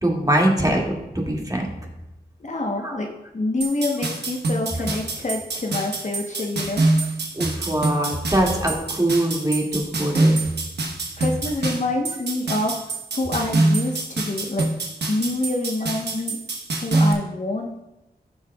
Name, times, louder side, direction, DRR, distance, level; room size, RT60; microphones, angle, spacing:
voice 1, 0.0-1.7 2.8-3.0 7.3-10.3, right 1 dB, 20° right, -1 dB, 2.2 m, -22 dB
voice 2, 2.4-3.1 3.3-6.8 11.2-14.7 15.1-16.4 16.8-17.8, left 2 dB, 45° left, 1 dB, 1.1 m, -26 dB
sound 1, 3.6-17.1, right 2 dB, 85° right, 1.2 m, -25 dB
14.5 x 6.3 x 2.4 m, 0.94 s
cardioid pair, 45°, 17 cm